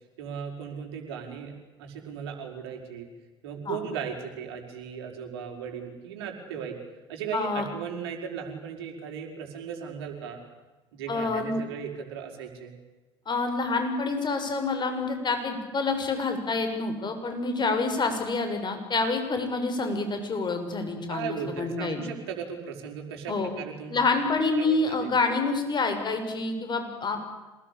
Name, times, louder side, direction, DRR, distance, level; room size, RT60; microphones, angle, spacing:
voice 1, 0.2-3.1 3.4-6.7 7.1-10.4 10.9-12.7 21.1-24.0 24.6-25.1, right 7 dB, 75° right, 3 dB, 5.6 m, -37 dB
voice 2, 7.3-7.7 11.1-11.6 13.3-22.0 23.3-23.5 23.9-27.2, left 3 dB, 35° left, 6 dB, 7.1 m, -27 dB
27.5 x 20.0 x 8.7 m, 1.2 s
hypercardioid pair, 65°, 13 cm